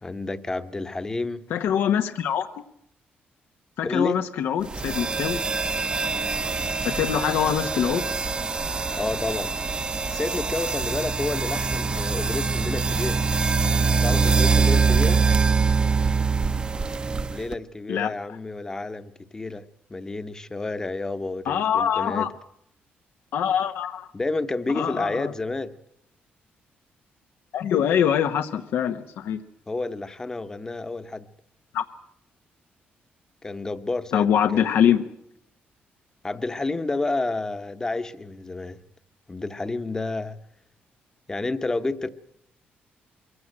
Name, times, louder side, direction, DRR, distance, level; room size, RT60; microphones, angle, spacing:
voice 1, 0.0-1.4 3.8-4.2 9.0-9.5 10.1-13.2 14.0-15.2 17.3-22.3 24.1-25.7 29.7-31.3 33.4-34.7 36.2-38.8 39.3-40.4 41.3-42.1, left 2 dB, 15° left, 0.9 m, -30 dB
voice 2, 1.5-2.5 3.8-5.4 6.8-8.1 17.9-18.1 21.5-22.3 23.3-24.1 24.7-25.3 27.5-29.4 31.7-31.8 34.1-35.0, left 9 dB, 85° left, 1.0 m, -23 dB
sound 1, 4.7-17.6, right 4 dB, 25° right, 0.8 m, -24 dB
23.0 x 16.0 x 8.8 m
cardioid pair, 155°, 4 cm